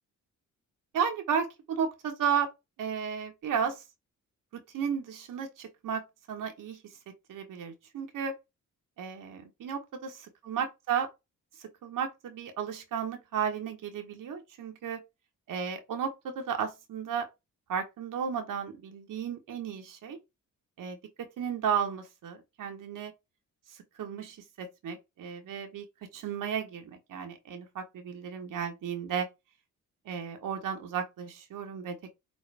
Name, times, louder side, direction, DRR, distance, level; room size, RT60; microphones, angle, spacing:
voice 1, 0.9-2.5 2.8-3.8 4.5-6.0 6.3-6.8 7.3-8.4 9.0-10.2 10.4-11.1 11.6-15.0 15.5-17.3 17.7-20.2 20.8-21.0 21.4-23.1 24.0-25.8 26.1-29.3 30.0-32.1, right 7 dB, 75° right, 1.3 m, -33 dB
5.4 x 2.2 x 3.4 m
cardioid pair, 80°, 33 cm